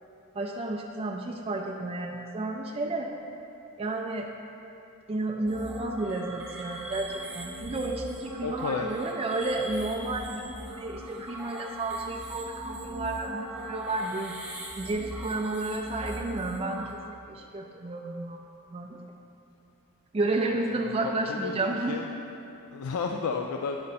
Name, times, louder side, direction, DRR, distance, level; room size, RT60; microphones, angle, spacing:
voice 1, 0.3-3.1 3.8-4.3 5.1-14.4 14.8-18.4 18.7-19.0 20.1-22.1, right 2 dB, 25° right, 1 dB, 0.4 m, -31 dB
sound 1, 5.5-16.9, equal, 5° right, 0.7 m, -40 dB
voice 2, 8.4-9.0 20.4-22.0 22.7-23.8, left 5 dB, 80° left, 2 dB, 0.4 m, -33 dB
9.5 x 5.0 x 4.2 m, 2.9 s
head